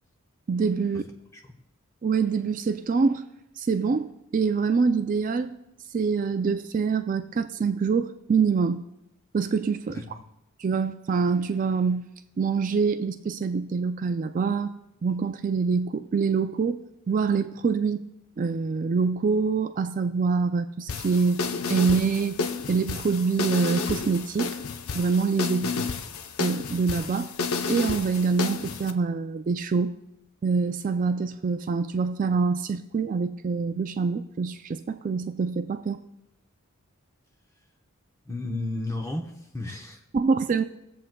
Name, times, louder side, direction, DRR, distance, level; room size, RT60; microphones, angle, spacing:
voice 1, 0.5-1.0 2.0-3.2 3.6-5.5 5.9-8.8 9.3-9.9 10.6-12.1 12.4-14.7 15.0-16.8 17.1-18.0 18.4-21.4 21.7-22.4 22.7-24.5 24.9-25.7 26.4-27.3 27.7-30.0 30.4-36.0 40.1-40.6, right 5 dB, 40° right, 9 dB, 0.3 m, -25 dB
voice 2, 9.9-10.2 25.6-25.9 38.2-40.0, left 2 dB, 15° left, 2 dB, 0.8 m, -34 dB
sound 1, 20.9-28.9, left 4 dB, 80° left, 0.6 m, -31 dB
21.5 x 7.5 x 2.2 m, 0.87 s
head